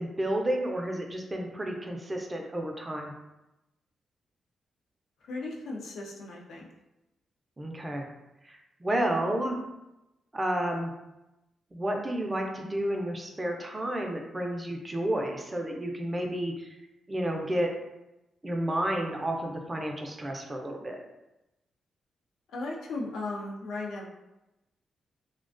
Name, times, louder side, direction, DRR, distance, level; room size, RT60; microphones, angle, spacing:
voice 1, 0.0-3.1 7.6-8.0 8.5-9.6 10.3-10.9 11.7-16.7 17.1-17.7 18.4-21.0, right 1 dB, 20° right, 1 dB, 0.4 m, -31 dB
voice 2, 5.3-6.7 22.5-24.1, left 2 dB, 85° left, -1 dB, 0.4 m, -36 dB
2.3 x 2.2 x 2.4 m, 0.96 s
cardioid pair, 80°, 0 cm